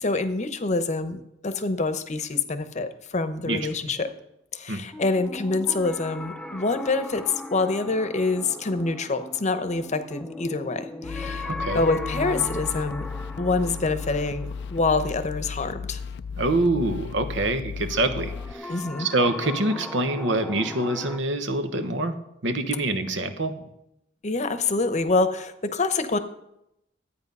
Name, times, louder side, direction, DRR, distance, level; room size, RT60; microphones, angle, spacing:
voice 1, 0.0-4.1 4.5-7.3 7.5-13.1 13.4-16.0 18.7-19.1 24.2-26.2, left 3 dB, 40° left, 11 dB, 0.8 m, -26 dB
sound 1, 4.9-15.8 17.9-21.2, left 2 dB, 5° left, 0.6 m, -38 dB
sound 2, 11.0-18.5, left 5 dB, 65° left, 0.4 m, -35 dB
voice 2, 11.4-11.8 16.4-18.7 19.0-22.2 22.4-23.5, right 2 dB, 75° right, 8 dB, 1.2 m, -25 dB
12.5 x 8.9 x 5.4 m, 0.83 s
head